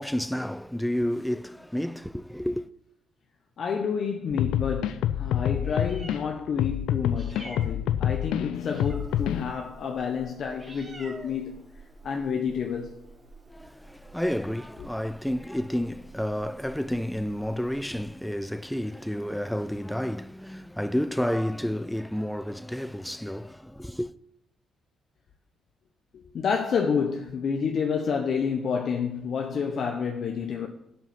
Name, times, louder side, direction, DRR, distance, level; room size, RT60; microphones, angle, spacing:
voice 1, 0.0-2.7 13.5-24.1, equal, 5° left, 0.4 m, -30 dB
voice 2, 3.6-11.6 12.0-13.0 26.1-30.7, left 6 dB, 60° left, 1.0 m, -29 dB
sound 1, 4.3-6.2 6.6-9.5, left 11 dB, 90° left, 0.4 m, -27 dB
Meow, 5.5-18.0, right 2 dB, 20° right, 3.2 m, -49 dB
11.5 x 5.7 x 5.8 m
cardioid pair, 90°, 0 cm